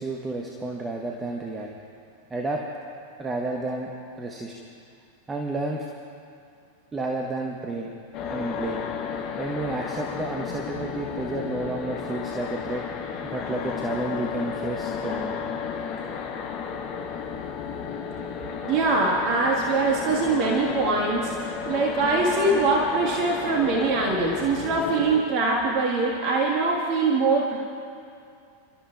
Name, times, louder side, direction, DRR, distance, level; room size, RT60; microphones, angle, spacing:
voice 1, 0.0-1.7 2.3-2.6 3.2-3.9 4.2-4.5 5.3-5.9 6.9-7.9 8.3-8.8 9.4-12.8 13.2-15.4, right 2 dB, 15° right, 0 dB, 1.1 m, -31 dB
sound 1, 8.1-25.2, left 6 dB, 40° left, 1.4 m, -33 dB
voice 2, 18.6-27.6, right 3 dB, 40° right, -1 dB, 1.5 m, -23 dB
29.0 x 12.5 x 2.3 m, 2.4 s
figure-of-eight pair, 90°, 0 cm